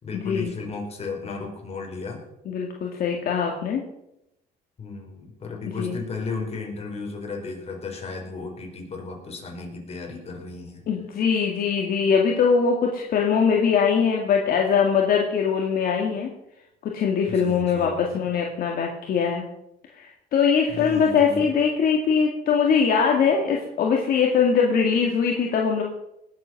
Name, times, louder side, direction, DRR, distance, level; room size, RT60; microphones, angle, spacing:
voice 1, 0.0-2.2 4.8-10.8 17.3-18.2 20.7-21.5, left 4 dB, 40° left, 1 dB, 4.9 m, -34 dB
voice 2, 2.5-3.8 5.8-6.0 10.9-16.3 16.8-19.4 20.0-25.8, left 6 dB, 60° left, 0 dB, 2.2 m, -22 dB
19.5 x 8.1 x 6.0 m, 0.83 s
cardioid pair, 110°, 17 cm